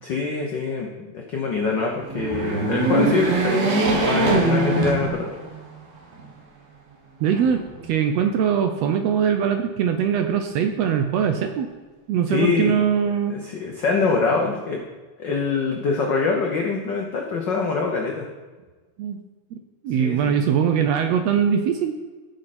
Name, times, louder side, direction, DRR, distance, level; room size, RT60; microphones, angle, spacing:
voice 1, 0.0-5.3 12.3-12.8 13.3-14.8 15.2-18.3 20.0-20.3, left 4 dB, 90° left, 1 dB, 0.9 m, -24 dB
sound 1, 2.0-5.6 6.1-6.2 7.3-8.1, right 2 dB, 60° right, 2.4 m, -22 dB
voice 2, 7.2-11.7 12.1-13.4 19.0-19.2 19.5-19.6 19.8-21.9, right 8 dB, 75° right, 7 dB, 1.6 m, -22 dB
14.0 x 6.6 x 4.2 m, 1.3 s
omnidirectional pair, 3.5 m